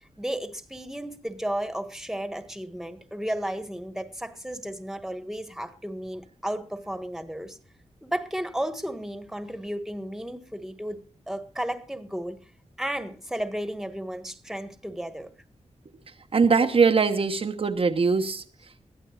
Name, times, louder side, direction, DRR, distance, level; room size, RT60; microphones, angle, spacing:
voice 1, 0.2-7.6 8.0-12.4 12.8-15.3, right 1 dB, 5° right, 1.7 m, -33 dB
voice 2, 16.3-18.4, right 5 dB, 50° right, 1.1 m, -21 dB
22.0 x 15.5 x 2.5 m
wide cardioid pair, 140°, 12 cm